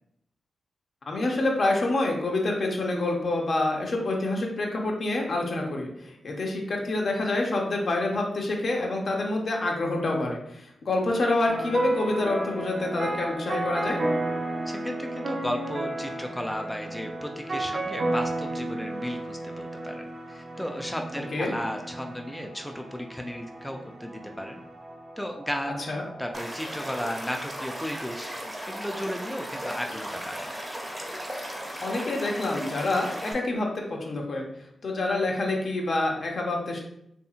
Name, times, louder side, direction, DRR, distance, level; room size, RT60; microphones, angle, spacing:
voice 1, 1.1-14.0 21.3-21.6 25.9-26.0 31.8-34.5 34.8-36.8, left 2 dB, 65° left, 0 dB, 0.6 m, -27 dB
sound 1, 11.5-26.4, right 2 dB, 60° right, 0.5 m, -33 dB
voice 2, 14.7-24.6 25.2-25.9 26.2-28.3 28.7-30.5, equal, 5° left, 3 dB, 0.3 m, -34 dB
Stream / Liquid, 26.3-33.3, equal, 25° right, 0.8 m, -36 dB
2.7 x 2.6 x 2.4 m, 0.77 s
supercardioid pair, 40°, 0 cm